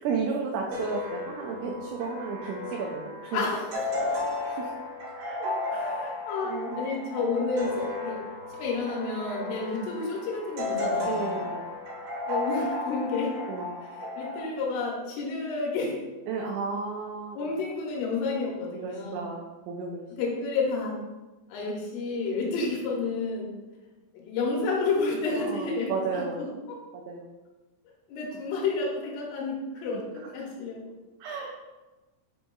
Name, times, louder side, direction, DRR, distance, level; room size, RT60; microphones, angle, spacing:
voice 1, 0.0-3.4 4.1-4.7 5.2-5.5 6.4-6.8 9.4-9.6 11.0-11.6 13.5-13.7 16.3-17.5 18.7-20.0 22.4-22.5 25.4-26.4 26.9-27.3 31.2-31.5, right 5 dB, 90° right, 0 dB, 2.6 m, -33 dB
sound 1, 0.7-14.4, left 2 dB, 60° right, 2.2 m, -34 dB
voice 2, 3.3-3.9 5.7-8.2 8.5-11.5 12.3-13.3 13.9-16.0 17.4-19.3 20.2-21.0 21.5-23.5 24.1-26.8 28.1-30.1 30.3-30.8, left 3 dB, 80° left, -2 dB, 3.2 m, -30 dB
7.7 x 2.6 x 2.3 m, 1.2 s
omnidirectional pair, 5.7 m